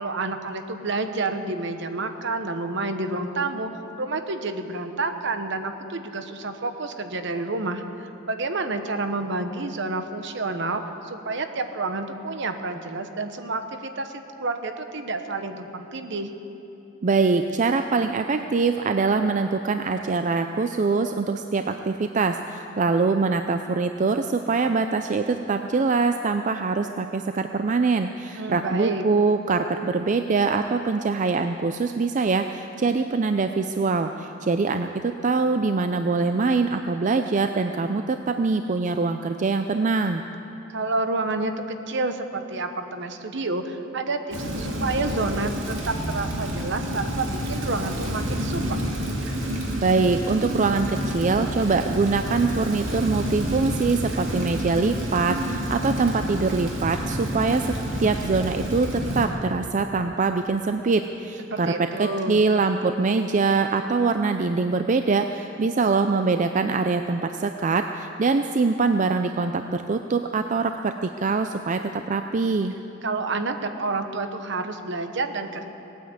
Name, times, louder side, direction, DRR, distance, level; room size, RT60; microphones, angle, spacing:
voice 1, 0.0-3.7 4.0-14.1 14.4-16.3 28.4-29.0 40.7-48.8 61.5-62.4 73.0-75.7, right 3 dB, 65° right, 7 dB, 1.1 m, -29 dB
voice 2, 17.0-40.2 49.8-57.6 58.0-72.7, right 4 dB, 40° right, 7 dB, 0.4 m, -23 dB
Rain, 44.3-59.3, equal, 85° right, 2.3 m, -29 dB
19.0 x 9.3 x 8.1 m, 3.0 s
head